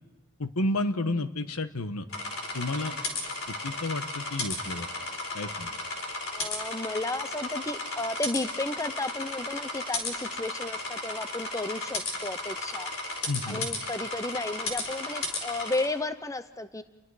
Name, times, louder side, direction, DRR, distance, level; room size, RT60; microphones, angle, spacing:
voice 1, 0.4-2.1 2.5-2.9 3.6-4.9 5.3-5.7 13.3-13.7, left 2 dB, 90° left, 10 dB, 1.2 m, -31 dB
sound 1, 2.1-15.9, left 3 dB, 65° left, 4.4 m, -34 dB
voice 2, 6.3-12.9 13.5-16.8, left 2 dB, 15° left, 12 dB, 0.6 m, -33 dB
30.0 x 21.5 x 4.9 m, 1.2 s
head